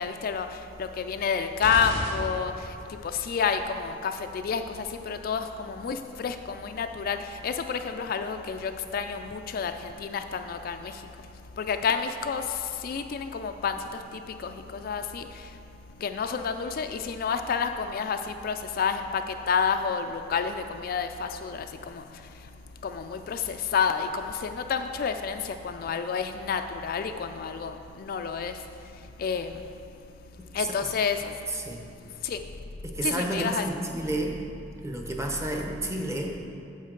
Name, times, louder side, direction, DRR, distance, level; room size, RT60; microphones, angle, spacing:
voice 1, 0.0-11.0 11.6-15.5 16.0-22.0 22.8-28.6 29.2-29.5 30.5-31.3 32.2-32.4 33.0-33.7, left 6 dB, 50° left, 7 dB, 0.3 m, -30 dB
sound 1, 1.6-2.9, equal, 75° right, 2.0 m, -34 dB
voice 2, 30.6-30.9 31.5-31.8 32.8-34.3 34.8-36.4, right 1 dB, 15° right, 1 dB, 0.8 m, -31 dB
9.4 x 7.2 x 3.8 m, 2.6 s
head